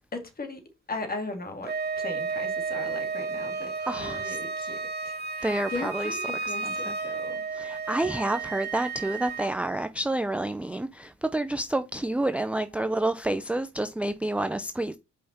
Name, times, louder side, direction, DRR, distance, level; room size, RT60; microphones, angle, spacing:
voice 1, 0.1-0.6 0.9-4.8 5.1-7.4 12.8-13.1, left 2 dB, 30° left, 2.3 m, -38 dB
Wind instrument woodwind instrument, 1.6-9.5, right 4 dB, 35° right, 1.4 m, -32 dB
voice 2, 3.8-4.4 5.4-6.2 6.4-7.0 7.5-15.0, right 1 dB, 5° right, 0.5 m, -29 dB
5.6 x 5.1 x 4.4 m
cardioid pair, 90°, 30 cm